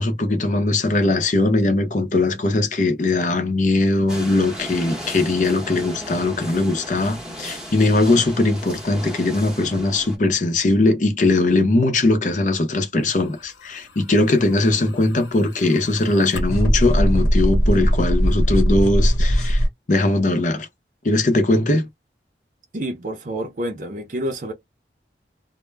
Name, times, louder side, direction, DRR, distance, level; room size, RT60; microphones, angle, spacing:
voice 1, 0.0-19.6 19.9-20.7 21.0-21.9, left 2 dB, 45° left, 0.6 m, -20 dB
sound 1, 4.1-10.2, equal, 5° right, 0.8 m, -35 dB
sound 2, 14.5-19.7, equal, 80° left, 1.1 m, -20 dB
voice 2, 22.7-24.5, right 1 dB, 45° right, 0.6 m, -28 dB
2.2 x 2.0 x 3.2 m
head